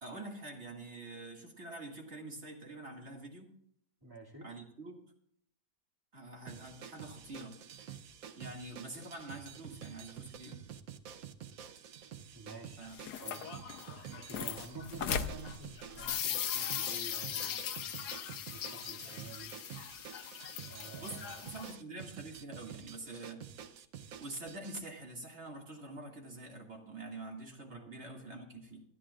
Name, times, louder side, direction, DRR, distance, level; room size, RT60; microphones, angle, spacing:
voice 1, 0.0-3.5 4.4-5.0 6.1-7.6 8.4-10.6 12.8-13.0 21.0-23.4 24.2-28.8, right 2 dB, 40° right, 0 dB, 2.4 m, -46 dB
voice 2, 4.0-4.5 9.0-9.1 12.3-12.9 13.2-13.4 14.0-17.6 18.5-19.5 20.6-21.4 27.7-27.9, right 2 dB, 15° right, -2 dB, 2.3 m, -50 dB
sound 1, 6.5-24.8, right 9 dB, 65° right, 1.1 m, -49 dB
sound 2, 12.8-21.7, left 8 dB, 75° left, 1.4 m, -39 dB
24.5 x 9.9 x 2.4 m, 0.69 s
omnidirectional pair, 1.8 m